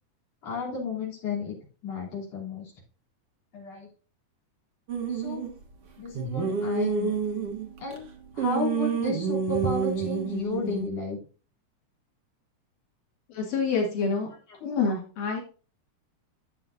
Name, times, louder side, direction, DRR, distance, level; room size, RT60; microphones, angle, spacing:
voice 1, 0.4-1.6 1.8-2.7 3.5-3.9 5.1-5.4 6.0-7.2 7.8-8.1 8.3-11.2 14.9-15.0, left 3 dB, 50° left, -5 dB, 4.4 m, -33 dB
sound 1, 4.9-5.5 6.1-8.0 8.4-10.9, right 6 dB, 55° right, 2.0 m, -28 dB
voice 2, 13.3-14.3 14.6-15.4, left 4 dB, 85° left, -2 dB, 3.8 m, -27 dB
12.5 x 8.0 x 2.7 m, 0.36 s
omnidirectional pair, 3.7 m